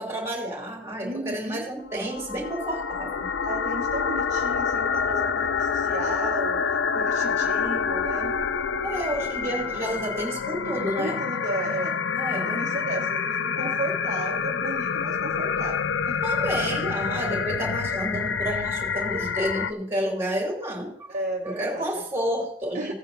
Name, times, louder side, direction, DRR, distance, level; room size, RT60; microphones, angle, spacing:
voice 1, 0.0-3.3 8.8-11.2 12.1-12.6 16.2-21.1 21.4-22.9, equal, 15° right, -1 dB, 2.9 m, -30 dB
voice 2, 1.0-1.7 3.4-6.6 6.9-8.3 11.0-12.0 12.3-16.7 21.1-22.0 22.7-22.9, right 2 dB, 45° right, -2 dB, 1.2 m, -34 dB
sound 1, 1.9-19.7, left 6 dB, 75° left, 0.5 m, -27 dB
16.5 x 8.9 x 2.7 m, 0.72 s
head